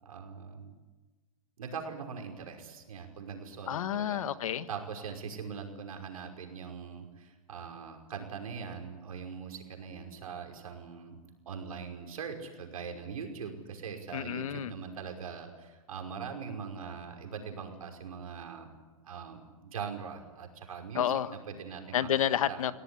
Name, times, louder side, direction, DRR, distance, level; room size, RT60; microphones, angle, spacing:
voice 1, 0.0-0.8 1.6-4.3 4.7-11.2 11.5-18.7 19.0-22.1 22.5-22.6, right 6 dB, 80° right, 4 dB, 5.6 m, -41 dB
voice 2, 3.7-4.7 14.1-14.7 20.9-21.3 21.9-22.7, left 10 dB, 70° left, 13 dB, 1.5 m, -30 dB
25.0 x 17.5 x 10.0 m, 1.2 s
hypercardioid pair, 145°, 18 cm